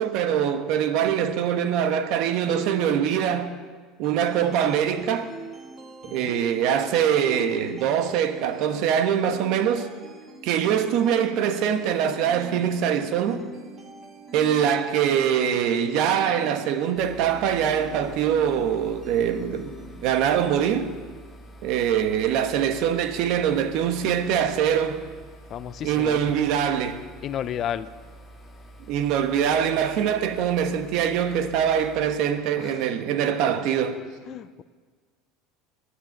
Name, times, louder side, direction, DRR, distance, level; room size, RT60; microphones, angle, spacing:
voice 1, 0.0-3.5 4.0-5.3 6.1-9.9 10.4-13.5 14.3-19.8 20.0-20.9 21.6-25.1 25.8-27.0 28.9-34.0, right 8 dB, 60° right, 1.2 m, -23 dB
sound 1, 4.0-20.0, right 2 dB, 25° right, 1.4 m, -44 dB
sound 2, 17.0-32.2, right 1 dB, 10° left, 1.9 m, -47 dB
voice 2, 25.5-26.3 27.2-27.9 32.6-32.8 34.3-34.6, left 10 dB, 40° left, 0.5 m, -33 dB
15.0 x 10.0 x 6.6 m
supercardioid pair, 140°, 0 cm